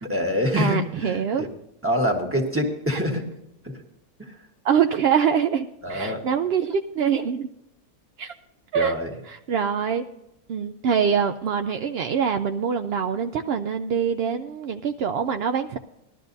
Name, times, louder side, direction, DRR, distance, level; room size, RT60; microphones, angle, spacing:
voice 1, 0.0-1.5 1.8-3.2 4.2-4.3 5.8-6.2 8.7-9.1, equal, 10° right, 2 dB, 1.4 m, -25 dB
voice 2, 0.6-1.5 2.9-3.0 4.6-7.5 8.2-8.3 8.7-9.0 9.3-10.1 10.5-15.8, right 7 dB, 75° right, 7 dB, 0.5 m, -24 dB
19.5 x 12.5 x 2.7 m, 0.86 s
omnidirectional pair, 1.6 m